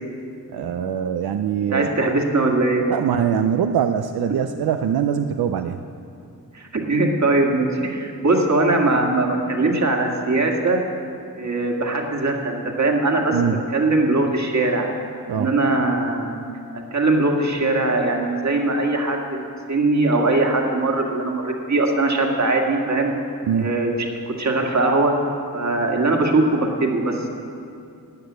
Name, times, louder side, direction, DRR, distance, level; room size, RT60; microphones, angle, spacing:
voice 1, 0.5-1.9 2.9-5.8 13.3-13.6 15.3-15.5 23.5-23.7, right 8 dB, 90° right, 7 dB, 0.5 m, -22 dB
voice 2, 1.7-2.9 6.5-10.8 11.4-14.9 15.3-16.3 16.9-19.2 19.7-23.1 23.5-23.9 24.3-25.1 25.5-27.3, right 2 dB, 50° right, 1 dB, 2.0 m, -21 dB
13.5 x 9.6 x 8.0 m, 2.5 s
wide cardioid pair, 80°, 36 cm